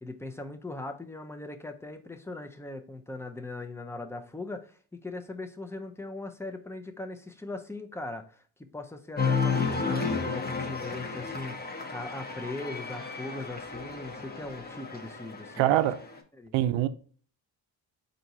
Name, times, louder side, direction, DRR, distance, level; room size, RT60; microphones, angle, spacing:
voice 1, 0.0-11.6 11.9-15.7 16.4-16.5, left 2 dB, 5° left, 0.5 m, -40 dB
Cheering, 9.2-16.2, left 4 dB, 20° left, 0.9 m, -32 dB
voice 2, 15.6-16.0 16.5-16.9, right 13 dB, 90° right, 0.5 m, -24 dB
4.4 x 2.7 x 3.9 m
cardioid pair, 95°, 44 cm